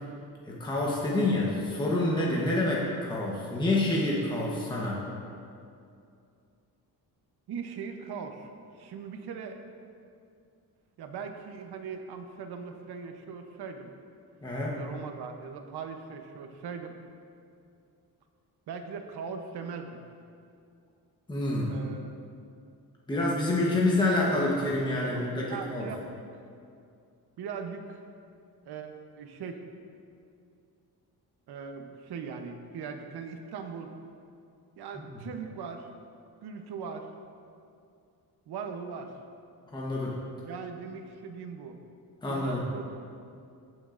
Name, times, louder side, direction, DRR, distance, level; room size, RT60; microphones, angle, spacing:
voice 1, 0.5-5.0 14.4-14.8 21.3-21.7 23.1-25.9 39.7-40.2 42.2-42.6, left 2 dB, 10° left, -4 dB, 1.0 m, -27 dB
voice 2, 7.5-9.6 11.0-13.9 14.7-17.0 18.7-20.0 21.7-22.1 25.1-26.0 27.4-28.0 28.7-29.6 31.5-33.9 34.8-35.9 36.4-37.1 38.5-39.2 40.4-41.8 42.2-42.8, right 6 dB, 75° right, 5 dB, 0.9 m, -40 dB
15.5 x 6.2 x 2.6 m, 2.5 s
cardioid pair, 140°, 39 cm